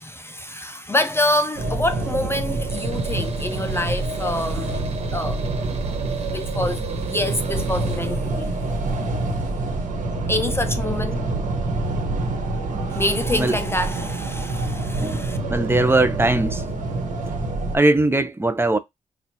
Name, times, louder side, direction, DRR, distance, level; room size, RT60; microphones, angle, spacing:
voice 1, 0.0-4.8 5.1-5.4 6.3-8.5 8.9-9.0 10.3-11.2 12.9-15.4, left 1 dB, 20° left, 0.5 m, -26 dB
sound 1, 1.5-17.8, right 2 dB, 85° right, 1.3 m, -26 dB
Tools, 2.7-8.1, right 4 dB, 50° right, 1.3 m, -43 dB
voice 2, 15.5-16.6 17.7-18.8, right 2 dB, 20° right, 0.7 m, -20 dB
6.4 x 2.5 x 2.9 m
cardioid pair, 65°, 13 cm